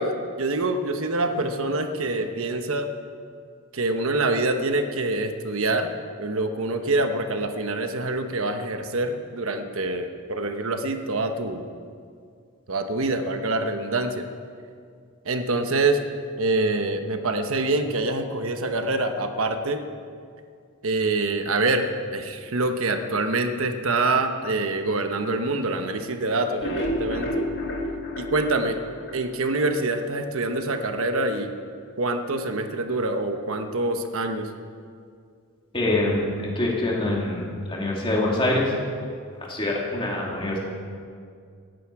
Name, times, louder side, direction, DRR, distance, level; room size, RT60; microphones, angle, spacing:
voice 1, 0.0-2.9 3.7-5.9 6.2-11.7 12.7-14.2 15.2-16.0 16.4-19.8 20.8-27.4 28.2-28.8 29.1-31.5 32.0-34.5, right 2 dB, 70° right, 7 dB, 1.1 m, -25 dB
sound 1, 26.5-29.6 30.0-30.1 30.5-30.6 30.9-31.0, equal, 50° left, 2.0 m, -30 dB
voice 2, 35.7-38.8 39.4-40.6, left 1 dB, 25° left, -3 dB, 2.9 m, -25 dB
17.5 x 14.5 x 4.8 m, 2.2 s
head